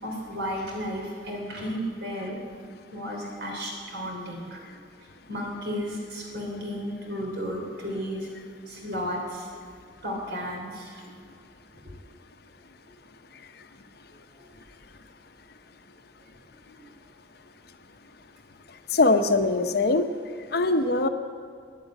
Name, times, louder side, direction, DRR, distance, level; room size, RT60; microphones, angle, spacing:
voice 1, 0.0-2.4 2.9-4.8 5.3-8.3 8.7-9.5 10.0-11.0 14.4-14.5 16.3-16.4 16.8-16.9, equal, 65° right, -1 dB, 3.7 m, -33 dB
voice 2, 18.9-20.1 20.5-21.1, left 3 dB, 60° left, 8 dB, 0.8 m, -21 dB
11.5 x 9.8 x 9.2 m, 2.1 s
head